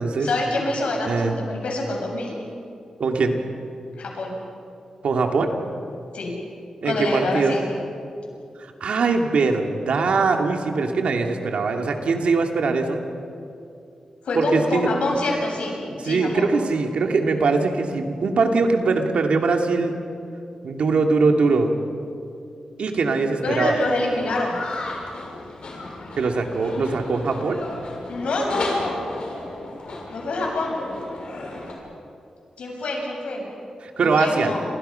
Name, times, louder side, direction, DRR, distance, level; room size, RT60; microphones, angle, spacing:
voice 1, 0.2-2.4 4.0-4.3 6.1-6.3 6.8-7.6 14.2-15.8 16.0-16.5 23.4-24.6 28.1-29.0 30.1-30.9 32.6-33.4 34.0-34.6, left 2 dB, 80° left, 0 dB, 7.4 m, -26 dB
voice 2, 3.0-3.4 5.0-5.5 6.8-7.6 8.6-13.0 14.4-14.9 16.0-19.9 20.6-21.7 22.8-23.7 26.2-27.6 33.8-34.5, right 4 dB, 75° right, 3 dB, 2.5 m, -21 dB
sound 1, 23.5-31.7, left 2 dB, 55° left, 6.6 m, -34 dB
29.5 x 28.0 x 5.8 m, 2.5 s
wide cardioid pair, 175°, 2 cm